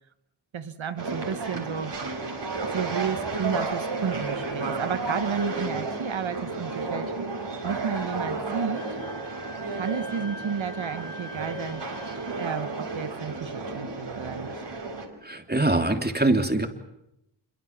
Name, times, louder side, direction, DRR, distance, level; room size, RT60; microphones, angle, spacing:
voice 1, 0.5-1.9 2.7-7.1 7.6-8.8 9.7-11.8 12.4-14.6, right 7 dB, 80° right, 11 dB, 1.2 m, -32 dB
sound 1, 1.0-15.1, right 3 dB, 65° right, 5.0 m, -32 dB
Wind instrument woodwind instrument, 8.8-12.7, left 1 dB, 35° left, 4.9 m, -44 dB
voice 2, 15.2-16.7, right 2 dB, 20° right, 5 dB, 3.2 m, -23 dB
27.0 x 23.0 x 7.3 m, 0.85 s
wide cardioid pair, 65°, 46 cm